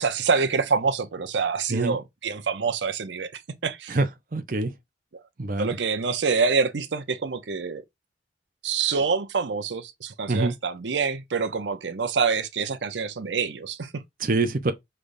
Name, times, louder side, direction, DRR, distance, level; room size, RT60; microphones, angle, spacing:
voice 1, 0.0-4.0 5.6-7.8 8.6-14.0, right 5 dB, 90° right, 0.7 m, -26 dB
voice 2, 4.3-4.7 5.4-5.8 10.3-10.5 14.2-14.7, right 2 dB, 50° right, 0.6 m, -24 dB
5.1 x 3.3 x 2.6 m
head